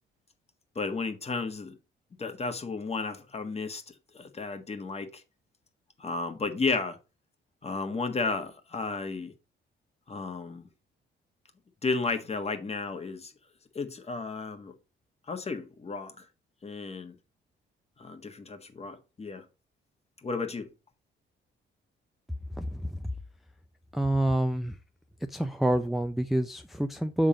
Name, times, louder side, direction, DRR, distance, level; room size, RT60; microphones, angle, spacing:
voice 1, 0.7-1.8 2.2-5.2 6.0-7.0 7.6-9.3 10.1-10.7 11.8-13.3 13.7-14.7 15.3-16.3 16.6-17.1 18.0-19.4 20.2-20.7, left 4 dB, 30° left, 1.5 m, -33 dB
voice 2, 22.6-23.0 23.9-24.8 25.3-27.3, right 1 dB, ahead, 0.6 m, -27 dB
7.2 x 3.8 x 5.0 m
cardioid pair, 90°, 20 cm